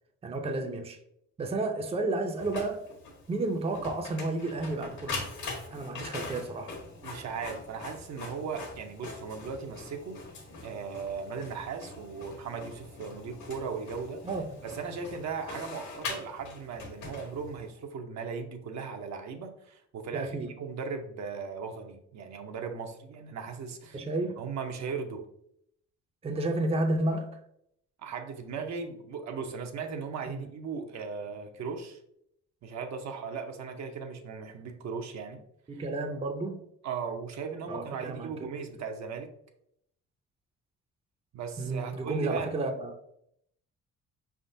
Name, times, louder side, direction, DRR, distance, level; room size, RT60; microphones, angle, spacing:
voice 1, 0.2-1.0 1.4-2.8 3.3-5.2 5.7-6.7 14.2-14.5 20.1-20.5 23.9-24.4 26.2-27.4 30.3-30.5 35.7-36.6 37.7-38.5 41.6-42.9, right 2 dB, 20° right, 0.5 m, -31 dB
Printer, 2.4-17.7, left 3 dB, 70° left, 1.3 m, -42 dB
voice 2, 7.0-10.2 10.6-14.2 14.6-24.0 24.4-25.2 28.0-32.0 32.6-35.4 35.7-35.8 36.8-39.3 41.3-42.6, right 5 dB, 65° right, 0.7 m, -37 dB
5.1 x 3.6 x 2.6 m
cardioid pair, 90°, 30 cm